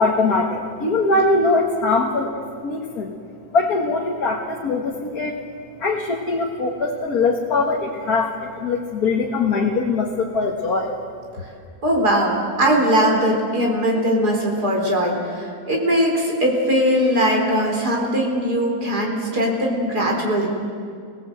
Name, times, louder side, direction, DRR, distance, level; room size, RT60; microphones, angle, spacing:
voice 1, 0.0-3.1 3.5-5.4 5.8-10.9, left 3 dB, 70° left, -1 dB, 2.1 m, -21 dB
voice 2, 11.8-20.5, equal, 90° right, -1 dB, 4.6 m, -20 dB
29.0 x 17.5 x 8.0 m, 2.3 s
omnidirectional pair, 1.7 m